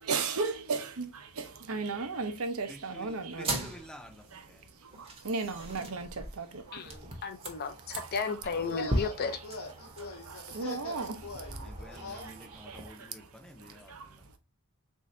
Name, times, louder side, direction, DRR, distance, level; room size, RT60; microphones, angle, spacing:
voice 1, 0.0-3.6 4.3-4.4 4.8-7.0 7.9-8.1 8.9-9.0 9.8-13.1 13.6-14.4, right 4 dB, 70° right, 0.7 m, -36 dB
voice 2, 2.7-4.7 7.8-7.9 11.6-14.3, equal, 5° left, 0.6 m, -51 dB
sound 1, 3.3-12.9, right 1 dB, 25° right, 0.8 m, -40 dB
voice 3, 6.7-9.4, left 5 dB, 45° left, 0.5 m, -34 dB
Drum, 8.4-9.6, left 1 dB, 30° left, 1.0 m, -53 dB
sound 2, 8.5-12.3, left 3 dB, 65° left, 0.9 m, -42 dB
3.7 x 2.7 x 3.2 m
head